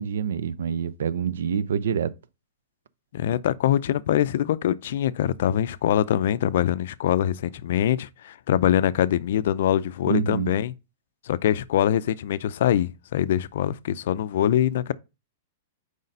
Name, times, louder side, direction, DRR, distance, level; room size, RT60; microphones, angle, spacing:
voice 1, 0.0-2.1 10.1-10.5, right 7 dB, 85° right, 0.5 m, -26 dB
voice 2, 3.1-10.7 11.3-14.9, left 11 dB, 65° left, 0.4 m, -23 dB
4.9 x 4.0 x 5.3 m
supercardioid pair, 155°, 0 cm